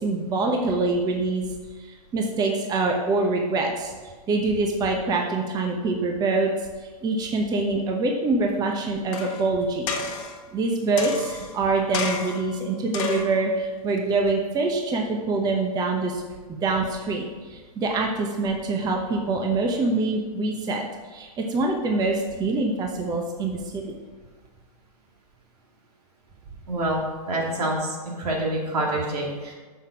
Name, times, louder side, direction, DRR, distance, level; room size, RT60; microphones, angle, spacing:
voice 1, 0.0-1.5 1.8-3.9 4.3-6.5 6.8-9.9 10.5-16.2 16.5-23.8, right 3 dB, 20° right, 1 dB, 0.9 m, -25 dB
sound 1, 9.1-9.5 9.9-10.4 11.0-11.5 11.9-12.5 12.9-13.4 14.0-14.1, left 5 dB, 55° left, 1.3 m, -30 dB
voice 2, 26.7-29.5, right 1 dB, 80° right, -2 dB, 2.6 m, -27 dB
6.6 x 5.7 x 5.7 m, 1.4 s
hypercardioid pair, 130°, 20 cm